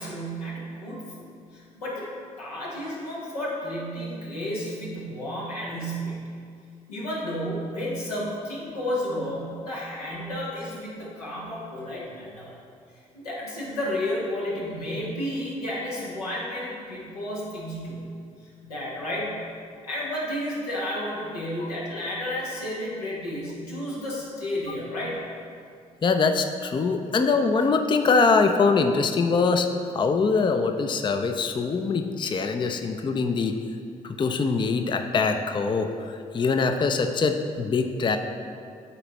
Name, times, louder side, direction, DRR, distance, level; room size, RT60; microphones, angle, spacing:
voice 1, 0.0-2.1 2.4-6.2 6.9-12.5 13.1-18.1 18.4-19.4 19.8-25.2, equal, 85° left, -6 dB, 1.1 m, -32 dB
voice 2, 26.0-29.7 29.9-33.6 34.0-38.2, left 4 dB, 25° left, 6 dB, 0.4 m, -23 dB
9.8 x 4.1 x 3.0 m, 2.3 s
figure-of-eight pair, 40°, 19 cm